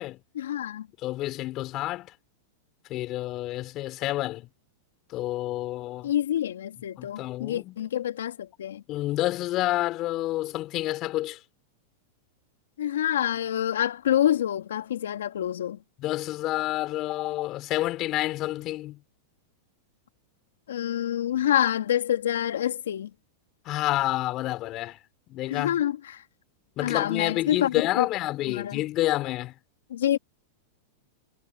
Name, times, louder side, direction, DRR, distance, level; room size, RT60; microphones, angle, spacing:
voice 1, 0.3-0.9 6.0-8.8 12.8-15.8 20.7-23.1 25.5-26.2 26.8-28.1 28.4-28.8 29.9-30.2, left 11 dB, 80° left, 2.3 m, -27 dB
voice 2, 1.0-2.1 2.9-4.5 5.1-6.1 7.0-7.8 8.9-11.4 16.0-19.0 23.6-25.0 25.3-25.8 26.8-29.5, left 16 dB, 40° left, 4.9 m, -29 dB
hypercardioid pair, 115°, 0 cm